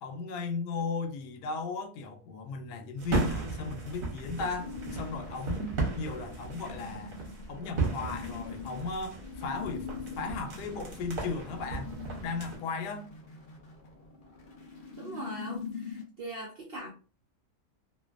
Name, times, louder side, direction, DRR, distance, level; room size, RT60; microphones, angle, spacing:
voice 1, 0.0-7.2 7.5-11.9 12.2-13.1, left 4 dB, 85° left, 1.2 m, -36 dB
sound 1, 3.0-12.6, right 3 dB, 45° right, 0.7 m, -36 dB
sound 2, 4.6-16.0, left 5 dB, 65° left, 0.5 m, -44 dB
voice 2, 15.0-16.9, right 2 dB, 80° right, 0.5 m, -41 dB
2.5 x 2.4 x 2.3 m
omnidirectional pair, 1.7 m